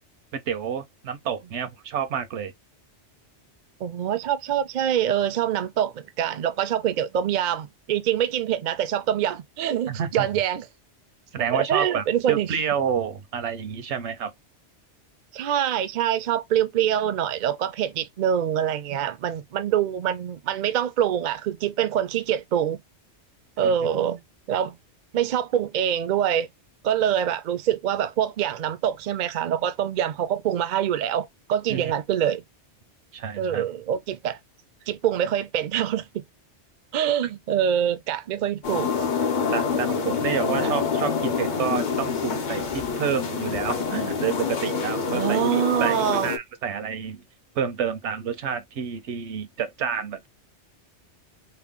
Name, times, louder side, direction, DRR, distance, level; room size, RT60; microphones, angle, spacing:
voice 1, 0.3-2.5 9.9-10.3 11.3-14.3 23.6-23.8 31.7-31.9 33.1-33.6 39.5-45.4 45.8-46.0 46.2-47.2 47.5-50.3, right 7 dB, 80° right, 1.0 m, -29 dB
voice 2, 3.8-10.7 11.5-12.6 15.3-22.8 23.6-24.2 24.5-24.8 25.1-26.5 26.8-32.4 33.4-34.4 34.9-36.2 36.9-38.9 40.6-40.7 45.1-46.3, right 10 dB, 60° right, 0.5 m, -25 dB
sound 1, 38.6-46.4, left 5 dB, 50° left, 0.7 m, -26 dB
2.9 x 2.2 x 3.5 m
omnidirectional pair, 1.2 m